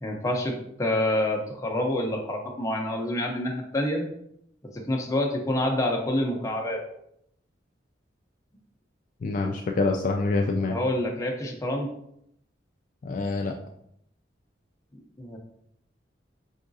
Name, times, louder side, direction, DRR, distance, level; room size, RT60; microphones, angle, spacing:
voice 1, 0.0-4.1 4.7-6.8 10.7-11.9 15.2-15.4, left 1 dB, 15° left, 0 dB, 0.6 m, -27 dB
voice 2, 9.2-10.8 13.0-13.6, left 3 dB, 45° left, 2 dB, 0.3 m, -26 dB
4.8 x 3.5 x 2.6 m, 0.74 s
head